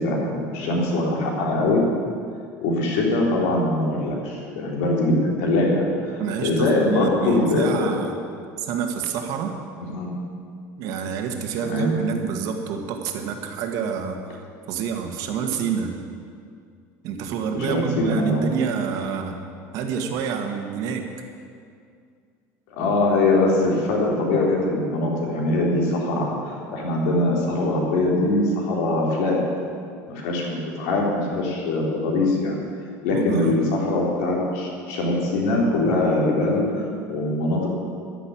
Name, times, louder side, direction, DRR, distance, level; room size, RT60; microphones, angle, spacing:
voice 1, 0.0-1.8 2.6-7.9 9.9-10.1 11.6-11.9 17.5-18.4 22.8-29.4 30.1-32.6 33.0-37.7, left 2 dB, 80° left, -2 dB, 3.7 m, -22 dB
voice 2, 6.2-8.2 8.6-9.6 10.8-16.0 17.0-19.4 19.7-21.1 33.1-33.6, right 6 dB, 55° right, 4 dB, 1.7 m, -28 dB
11.0 x 10.5 x 8.7 m, 2.3 s
cardioid pair, 160°, 7 cm